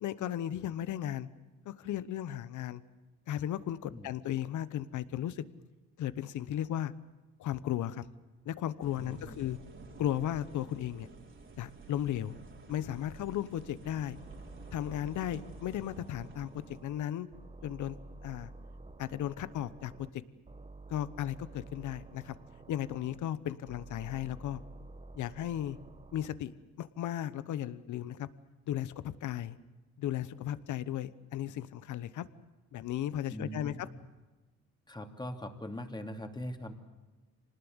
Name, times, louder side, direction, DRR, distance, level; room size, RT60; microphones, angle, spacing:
voice 1, 0.0-1.3 1.6-2.8 3.3-5.4 6.0-6.9 7.4-8.1 8.4-9.6 10.0-11.1 11.6-12.4 12.7-14.2 14.7-17.3 17.6-18.0 18.2-18.5 19.0-20.1 20.9-22.3 22.7-24.6 25.2-25.8 26.1-28.3 28.7-29.6 30.0-32.2 32.7-33.9, left 11 dB, 75° left, 16 dB, 1.1 m, -35 dB
sound 1, 8.8-17.0, right 3 dB, 40° right, 3.2 m, -52 dB
voice 2, 9.0-9.4 33.3-33.8 34.9-36.7, left 1 dB, 15° left, 5 dB, 2.8 m, -41 dB
sound 2, 14.2-17.0 17.3-20.1 20.5-23.2 23.7-26.3, right 3 dB, 20° right, 1.4 m, -50 dB
25.5 x 19.5 x 8.1 m, 1.2 s
cardioid pair, 90°, 30 cm